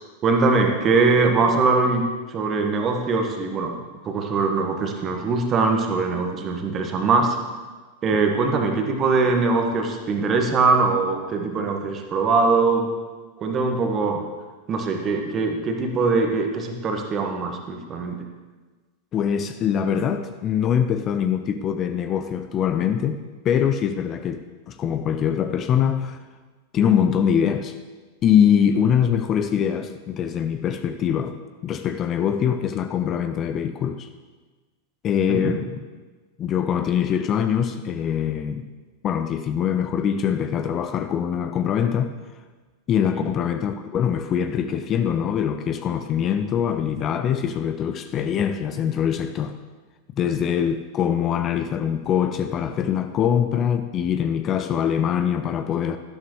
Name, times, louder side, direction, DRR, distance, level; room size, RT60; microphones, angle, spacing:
voice 1, 0.2-2.0 2.3-3.8 4.0-7.4 8.0-12.9 13.4-14.2 14.7-18.2 35.3-35.6 43.1-43.3, right 4 dB, 30° right, 3 dB, 1.5 m, -22 dB
voice 2, 19.1-23.2 23.4-26.2 26.7-27.8 28.2-34.1 35.0-35.8 36.4-38.7 39.0-42.1 42.9-49.5 50.2-56.0, left 8 dB, 30° left, 10 dB, 0.5 m, -23 dB
12.5 x 12.0 x 3.2 m, 1.3 s
figure-of-eight pair, 90°, 0 cm